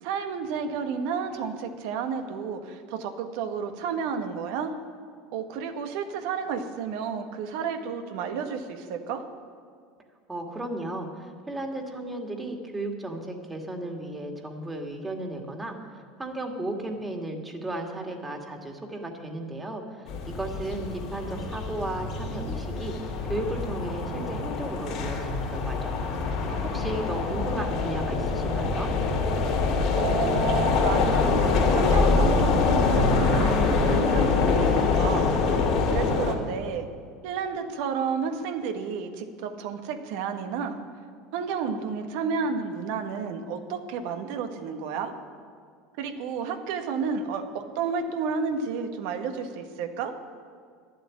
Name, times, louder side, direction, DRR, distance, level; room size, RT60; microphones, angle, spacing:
voice 1, 0.0-4.7 5.3-9.2 26.5-27.2 30.0-35.3 35.9-36.9 37.2-40.8 41.3-45.1 46.0-50.1, right 6 dB, 70° right, 6 dB, 1.4 m, -31 dB
voice 2, 10.3-22.9 23.2-26.0 26.7-28.9, right 1 dB, 15° right, 2 dB, 2.2 m, -35 dB
sound 1, 20.1-36.3, left 4 dB, 55° left, 2.8 m, -24 dB
11.5 x 7.8 x 9.7 m, 2.1 s
hypercardioid pair, 85°, 0 cm